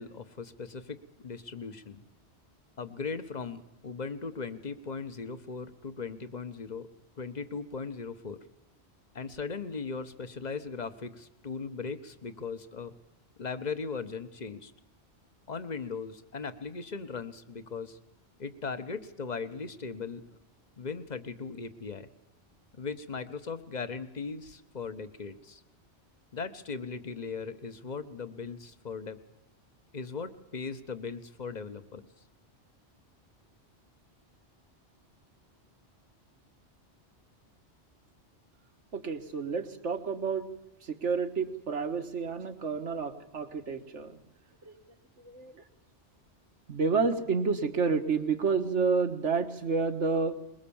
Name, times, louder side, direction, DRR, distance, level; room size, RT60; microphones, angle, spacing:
voice 1, 0.0-2.1 2.8-6.9 7.2-8.4 9.1-12.9 13.4-14.7 15.5-18.0 18.4-20.4 20.8-22.1 22.7-25.6 26.3-29.2 29.9-32.1, left 5 dB, 40° left, 12 dB, 1.3 m, -38 dB
voice 2, 38.9-40.5 40.8-44.2 44.6-44.7 45.2-45.5 46.7-50.4, right 5 dB, 85° right, 8 dB, 1.8 m, -29 dB
22.0 x 21.5 x 7.2 m, 0.90 s
omnidirectional pair, 1.2 m